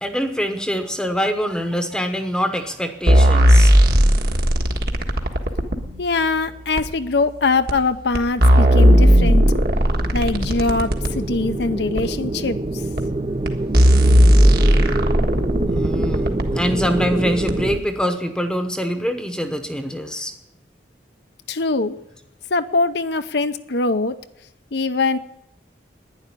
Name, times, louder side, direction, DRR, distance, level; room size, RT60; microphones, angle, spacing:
voice 1, 0.0-3.7 15.7-20.3, equal, 5° left, 7 dB, 0.9 m, -24 dB
sound 1, 3.1-5.8 6.8-6.9 7.7-7.8 8.1-11.1 12.0-12.1 13.0-13.1 13.4-13.5 13.7-16.5 17.5-17.6, equal, 55° right, 1.6 m, -15 dB
voice 2, 6.0-9.4 10.1-12.6 21.5-22.0 22.5-24.2 24.7-25.2, left 3 dB, 65° left, 9 dB, 0.7 m, -22 dB
sound 2, 8.5-17.8, right 2 dB, 30° right, 0.5 m, -26 dB
11.5 x 10.0 x 9.7 m, 0.82 s
head